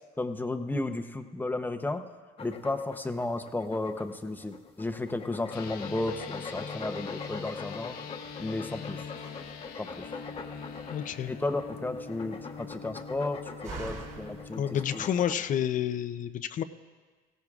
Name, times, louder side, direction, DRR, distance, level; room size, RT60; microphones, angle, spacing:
voice 1, 0.2-2.1 2.4-8.0 8.4-9.1 9.8-10.1 11.3-15.1, left 2 dB, 10° left, 7 dB, 0.7 m, -33 dB
sound 1, 2.4-15.3, left 4 dB, 35° left, 1.1 m, -43 dB
sound 2, 5.5-15.0, left 6 dB, 65° left, 1.0 m, -43 dB
Slam, 8.2-15.8, right 4 dB, 50° right, 4.3 m, -49 dB
voice 2, 10.9-11.3 14.6-16.6, left 9 dB, 50° left, 11 dB, 0.5 m, -29 dB
17.0 x 16.5 x 2.4 m, 1.4 s
cardioid pair, 110°, 17 cm